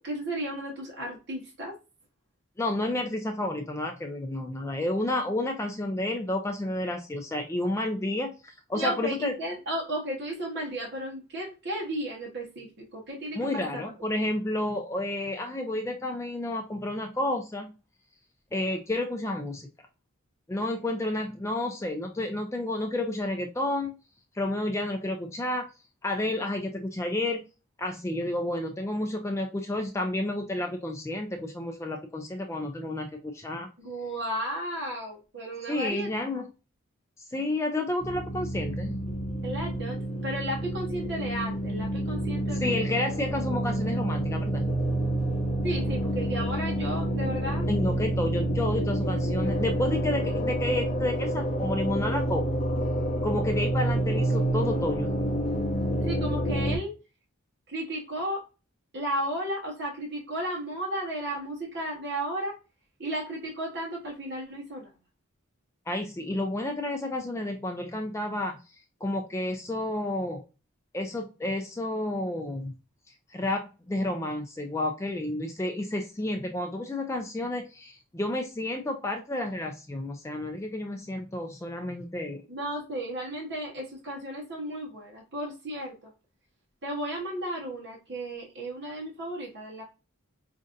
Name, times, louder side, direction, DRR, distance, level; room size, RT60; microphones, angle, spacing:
voice 1, 0.0-1.7 8.8-13.6 33.8-36.1 39.4-42.8 45.6-47.7 56.0-56.9 57.7-58.4 58.9-62.5 63.0-64.9 82.5-85.9 86.8-89.8, right 1 dB, 50° right, -3 dB, 1.1 m, -34 dB
voice 2, 2.6-9.4 13.3-17.7 18.5-19.7 20.5-24.0 24.3-25.7 26.0-27.4 27.8-33.7 35.7-36.5 37.2-39.0 42.5-44.7 47.7-52.6 53.2-55.2 65.9-70.4 70.9-72.7 73.1-82.4, left 1 dB, 15° left, 4 dB, 0.3 m, -31 dB
sound 1, 38.0-56.8, right 1 dB, 35° left, 0.8 m, -28 dB
5.2 x 2.5 x 2.5 m, 0.31 s
head